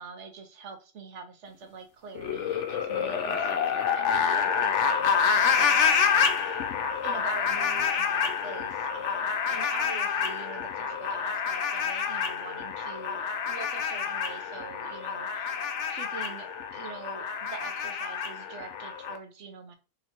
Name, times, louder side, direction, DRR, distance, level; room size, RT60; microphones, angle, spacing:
voice 1, 0.0-6.6 7.0-15.6 15.9-16.5 16.7-19.7, right 5 dB, 70° right, 4 dB, 1.1 m, -44 dB
sound 1, 2.1-19.2, left 6 dB, 70° left, 0.9 m, -28 dB
3.1 x 2.9 x 4.3 m, 0.33 s
omnidirectional pair, 1.3 m